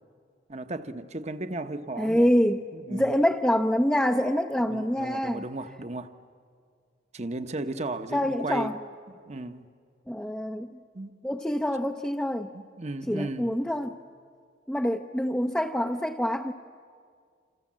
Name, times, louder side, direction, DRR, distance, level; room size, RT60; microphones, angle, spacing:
voice 1, 0.5-2.3 2.7-3.2 4.7-6.1 7.1-8.7 9.3-9.7 10.9-11.1 12.5-13.5, right 2 dB, 40° right, 1.0 m, -35 dB
voice 2, 2.0-5.4 8.1-8.8 10.1-10.8 11.2-12.5 13.1-14.0 14.7-16.5, equal, 5° left, 0.6 m, -26 dB
29.0 x 27.5 x 7.5 m
head